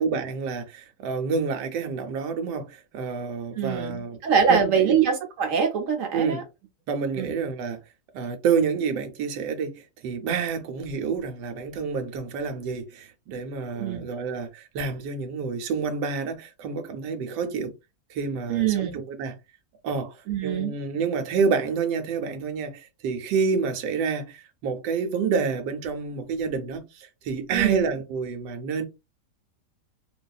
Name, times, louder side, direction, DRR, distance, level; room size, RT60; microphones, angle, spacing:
voice 1, 0.0-4.2 4.5-5.0 6.1-6.4 6.9-7.8 8.1-17.7 18.1-19.4 19.8-28.9, right 5 dB, 90° right, 1.2 m, -28 dB
voice 2, 3.6-6.4 7.2-7.3 13.8-14.1 18.5-19.0 20.3-20.7 27.5-27.8, right 7 dB, 65° right, 0.8 m, -24 dB
2.6 x 2.3 x 2.2 m
omnidirectional pair, 1.8 m